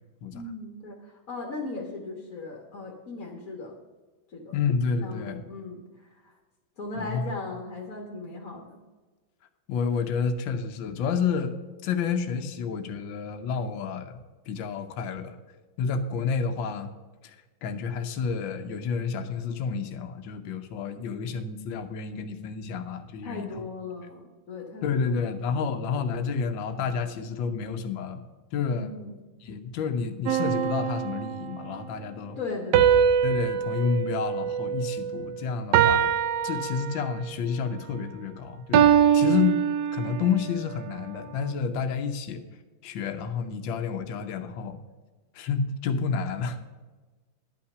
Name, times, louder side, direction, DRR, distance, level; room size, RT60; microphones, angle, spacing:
voice 1, 0.3-3.8 4.3-4.6 5.0-6.4 6.8-8.8 23.2-25.7 28.7-29.2 32.4-33.1, left 3 dB, 50° left, 0 dB, 1.7 m, -38 dB
voice 2, 4.5-5.4 7.0-7.2 9.7-11.5 11.8-14.2 14.5-15.4 15.8-16.9 17.2-17.3 17.6-23.7 24.8-28.2 28.5-28.9 29.4-32.4 33.2-36.1 36.4-38.8 39.1-39.6 39.9-42.4 42.8-44.8 45.3-46.6, left 6 dB, 80° left, 7 dB, 1.6 m, -29 dB
sound 1, 30.3-31.7 32.7-35.2 35.7-37.3 38.7-40.4, right 8 dB, 70° right, 1.2 m, -23 dB
11.0 x 5.7 x 6.6 m, 1.3 s
omnidirectional pair, 2.0 m